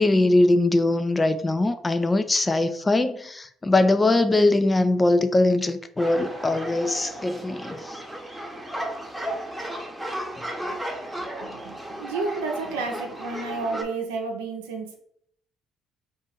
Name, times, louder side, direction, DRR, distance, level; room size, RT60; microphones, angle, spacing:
voice 1, 0.0-7.8, left 2 dB, 25° left, 0.4 m, -21 dB
sound 1, 6.0-13.8, right 1 dB, 10° right, 0.8 m, -34 dB
voice 2, 11.2-15.0, right 3 dB, 85° right, 0.6 m, -31 dB
2.6 x 2.5 x 4.1 m
hypercardioid pair, 55°, 0 cm